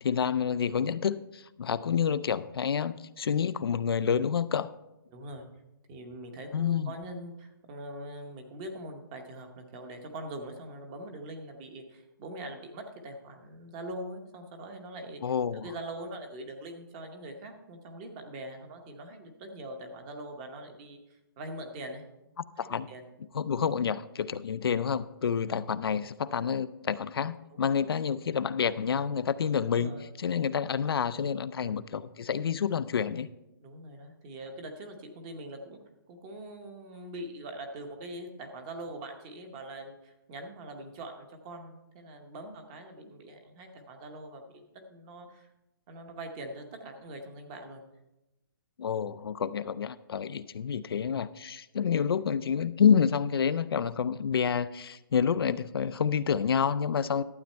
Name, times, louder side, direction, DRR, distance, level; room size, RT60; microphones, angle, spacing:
voice 1, 0.0-4.7 6.5-6.9 15.2-15.6 22.6-22.9 23.3-29.9 30.2-33.3 48.8-57.2, left 7 dB, 80° left, 13 dB, 0.5 m, -28 dB
voice 2, 5.1-5.5 5.9-15.2 15.5-23.1 27.5-27.8 29.7-30.0 31.6-31.8 33.6-35.8 36.1-44.6 44.9-45.5 45.9-47.8 56.8-57.0, right 1 dB, 15° right, 5 dB, 0.8 m, -43 dB
12.0 x 8.1 x 4.4 m, 0.93 s
hypercardioid pair, 175°, 12 cm